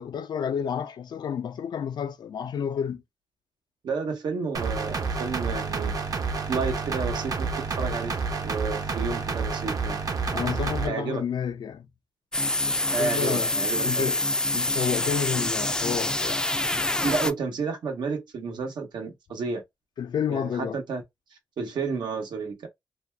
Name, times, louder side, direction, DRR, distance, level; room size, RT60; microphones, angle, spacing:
voice 1, 0.0-3.0 10.3-11.9 13.0-13.5 13.8-14.2 14.5-16.5 20.0-20.8, left 8 dB, 80° left, 0.4 m, -30 dB
voice 2, 3.8-6.0 6.5-7.5 7.8-8.1 8.4-10.0 10.9-11.2 12.9-14.1 17.0-19.6 20.3-21.0 21.6-22.7, right 4 dB, 90° right, 1.0 m, -31 dB
sound 1, 4.5-10.9, right 4 dB, 55° right, 0.7 m, -29 dB
sound 2, 12.3-17.3, left 1 dB, 10° left, 0.3 m, -26 dB
2.6 x 2.2 x 3.2 m
wide cardioid pair, 105°, 7 cm